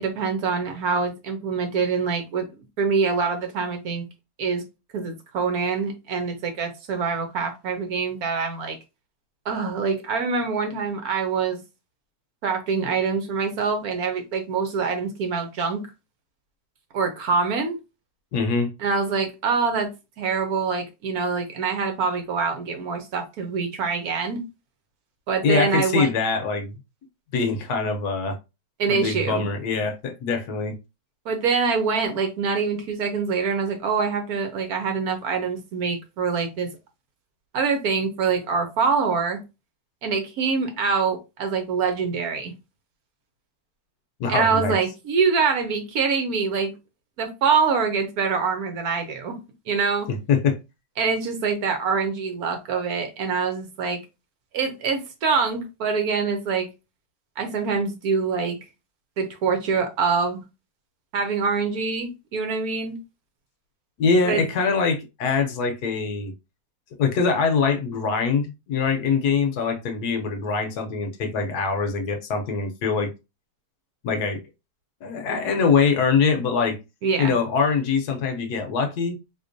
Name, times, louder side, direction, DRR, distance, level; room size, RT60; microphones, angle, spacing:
voice 1, 0.0-2.5 2.8-4.1 4.4-4.6 4.9-8.8 9.5-11.6 12.4-15.9 16.9-17.8 18.8-19.9 20.2-24.4 25.3-26.1 28.8-29.4 31.3-36.7 37.5-39.4 40.0-42.5 44.3-46.7 47.2-49.4 49.7-50.1 51.0-54.0 54.5-56.7 57.4-58.6 59.2-60.4 61.1-63.0 64.2-64.4 77.0-77.3, right 5 dB, 65° right, 1.1 m, -25 dB
voice 2, 18.3-18.7 25.4-26.8 27.3-28.4 28.9-30.7 44.2-44.7 50.1-50.6 64.0-66.3 67.0-73.1 74.0-74.4 75.0-76.8 77.2-79.2, left 5 dB, 70° left, 1.1 m, -23 dB
3.9 x 2.9 x 2.5 m
omnidirectional pair, 1.9 m